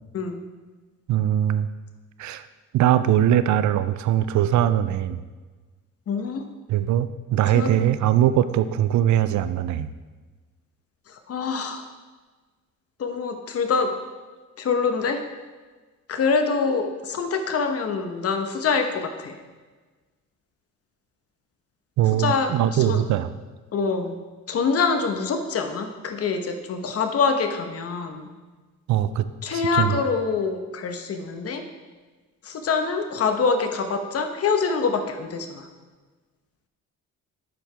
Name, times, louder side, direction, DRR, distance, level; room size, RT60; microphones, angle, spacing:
voice 1, 1.1-1.7 2.2-2.5 2.7-5.2 6.7-9.9 22.0-23.3 28.9-30.0, right 11 dB, 70° right, 13 dB, 0.5 m, -21 dB
voice 2, 6.1-6.4 7.5-7.7 11.1-11.9 13.0-13.9 14.6-15.2 16.1-19.4 22.2-23.0 23.7-24.2 24.5-28.3 29.4-31.6 32.4-35.7, left 5 dB, 50° left, 6 dB, 1.0 m, -25 dB
11.5 x 4.6 x 3.4 m, 1.3 s
cardioid pair, 90°, 30 cm